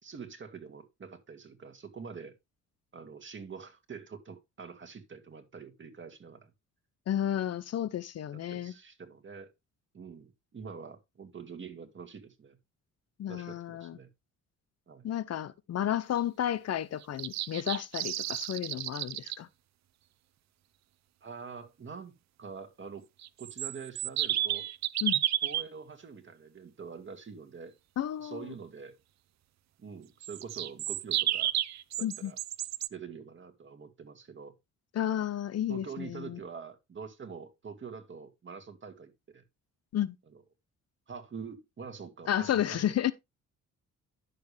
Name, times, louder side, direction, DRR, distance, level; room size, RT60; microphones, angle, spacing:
voice 1, 0.0-2.3 2.9-6.5 8.3-9.5 9.9-12.6 13.3-14.1 14.9-15.1 21.2-22.1 22.4-23.1 23.4-24.7 25.4-27.7 28.2-29.0 29.8-31.5 32.0-32.4 32.9-34.5 35.7-39.4 40.3-40.4 41.1-43.0, right 6 dB, 40° right, 2.2 m, -45 dB
voice 2, 7.1-8.7 13.2-14.0 15.0-19.5 25.0-25.2 28.0-28.4 32.0-32.3 34.9-36.4 39.9-40.2 42.3-43.1, left 11 dB, 55° left, 0.7 m, -32 dB
sound 1, 17.0-19.4 23.2-25.6 30.2-32.9, right 12 dB, 65° right, 0.7 m, -32 dB
10.5 x 7.0 x 3.3 m
cardioid pair, 90°, 30 cm